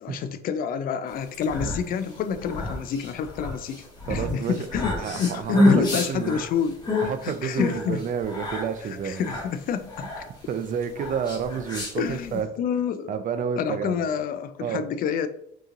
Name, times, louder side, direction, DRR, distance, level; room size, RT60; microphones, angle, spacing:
voice 1, 0.0-3.8 4.1-6.8 7.2-8.0 9.0-10.1 12.0-13.1 13.6-15.3, left 7 dB, 55° left, 11 dB, 0.4 m, -28 dB
sound 1, 1.2-12.4, left 1 dB, 25° left, 1.5 m, -28 dB
voice 2, 4.1-4.6 5.0-6.4 7.0-9.2 10.5-12.5 13.1-14.1 14.6-14.8, right 7 dB, 50° right, 9 dB, 0.5 m, -30 dB
5.4 x 2.9 x 2.5 m, 0.75 s
cardioid pair, 110°, 17 cm